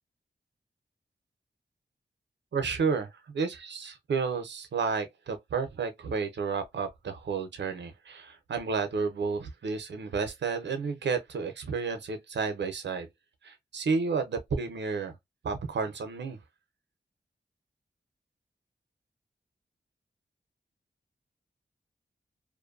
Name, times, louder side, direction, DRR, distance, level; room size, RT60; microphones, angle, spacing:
voice 1, 2.5-13.1 13.4-15.2 15.4-16.4, right 5 dB, 85° right, 0.7 m, -31 dB
2.5 x 2.2 x 2.5 m
cardioid pair, 65°, 18 cm